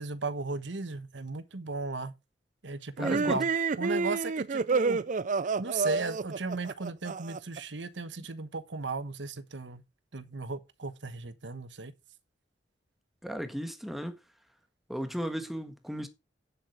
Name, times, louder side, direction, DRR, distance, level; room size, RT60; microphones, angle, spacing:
voice 1, 0.0-2.1 2.6-3.5 3.8-5.0 5.6-9.8 10.1-11.9, right 3 dB, 80° right, 1.2 m, -36 dB
voice 2, 3.0-3.4 13.2-14.2 14.9-16.1, equal, ahead, 1.5 m, -35 dB
sound 1, 3.0-7.6, right 4 dB, 45° right, 0.5 m, -29 dB
9.6 x 7.9 x 4.8 m
head